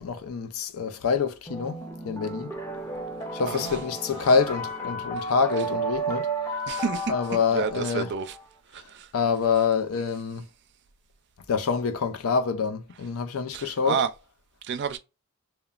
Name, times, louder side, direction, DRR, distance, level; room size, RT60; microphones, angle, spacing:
voice 1, 0.0-1.8 2.0-2.5 3.3-6.3 7.1-8.1 9.1-10.5 11.5-14.0, left 5 dB, 70° left, 0.4 m, -26 dB
sound 1, 1.5-8.5, right 2 dB, 10° left, 0.5 m, -33 dB
voice 2, 3.5-3.8 6.7-8.4 8.7-9.1 13.5-14.1 14.7-15.0, right 6 dB, 55° right, 0.4 m, -30 dB
2.9 x 2.1 x 2.4 m
head